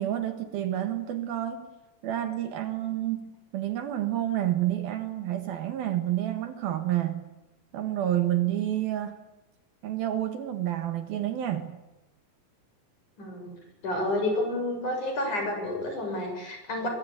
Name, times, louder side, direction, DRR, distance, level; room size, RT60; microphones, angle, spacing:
voice 1, 0.0-1.7 2.0-7.2 7.7-9.2 9.8-11.7, right 12 dB, 65° right, 8 dB, 3.2 m, -29 dB
voice 2, 13.2-13.5 13.8-16.9, left 1 dB, 45° left, 3 dB, 8.8 m, -30 dB
24.5 x 23.5 x 8.5 m, 0.99 s
omnidirectional pair, 4.8 m